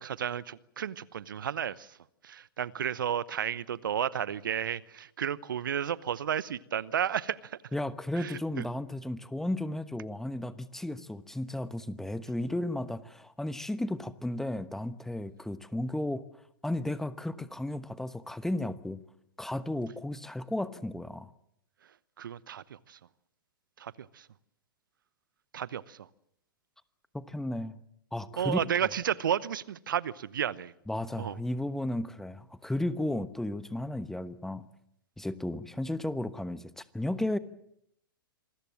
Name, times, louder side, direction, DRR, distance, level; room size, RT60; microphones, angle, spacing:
voice 1, 0.0-2.0 2.2-7.6 8.1-8.6 22.2-23.0 23.8-24.3 25.5-26.1 28.4-30.7 31.2-31.4, right 9 dB, 65° right, 0.9 m, -32 dB
voice 2, 7.7-16.2 16.6-19.0 19.4-21.3 27.1-27.8 28.1-28.6 30.9-34.7 35.2-37.4, left 1 dB, 5° left, 1.1 m, -34 dB
27.0 x 21.0 x 7.5 m
figure-of-eight pair, 110°, 12 cm